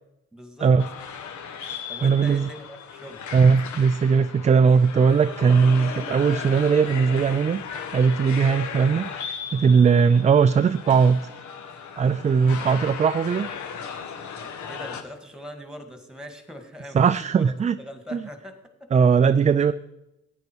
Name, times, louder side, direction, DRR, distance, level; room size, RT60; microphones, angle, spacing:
voice 1, 0.3-0.8 1.9-3.3 14.4-18.9, left 1 dB, ahead, 7 dB, 1.9 m, -41 dB
sound 1, 0.8-15.0, left 7 dB, 70° left, 1.3 m, -36 dB
voice 2, 2.0-2.5 3.3-7.6 7.9-11.2 12.0-13.5 16.9-17.8 18.1-18.2 18.9-19.7, right 6 dB, 25° right, 11 dB, 0.3 m, -19 dB
15.0 x 9.7 x 4.6 m, 0.91 s
cardioid pair, 90°, 30 cm